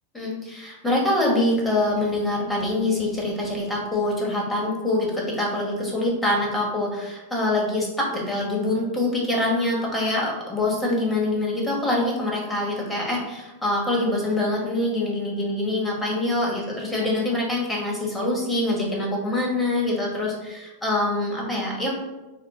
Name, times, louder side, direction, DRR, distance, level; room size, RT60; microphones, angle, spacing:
voice 1, 0.1-21.9, left 1 dB, 10° left, -3 dB, 1.2 m, -25 dB
4.8 x 2.2 x 3.6 m, 1.1 s
figure-of-eight pair, 90°, 0 cm